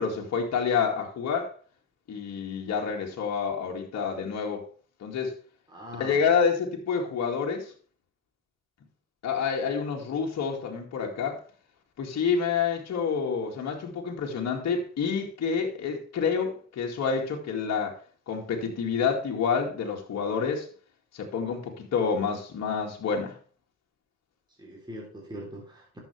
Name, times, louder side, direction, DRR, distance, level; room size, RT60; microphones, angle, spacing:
voice 1, 0.0-1.5 2.1-4.6 5.0-5.4 6.0-7.7 9.2-11.4 12.0-18.0 18.3-20.7 21.1-23.3, left 6 dB, 60° left, 2.3 m, -28 dB
voice 2, 5.7-6.2 24.6-26.0, equal, 15° right, 3.6 m, -42 dB
11.5 x 7.4 x 3.4 m
cardioid pair, 90°, 30 cm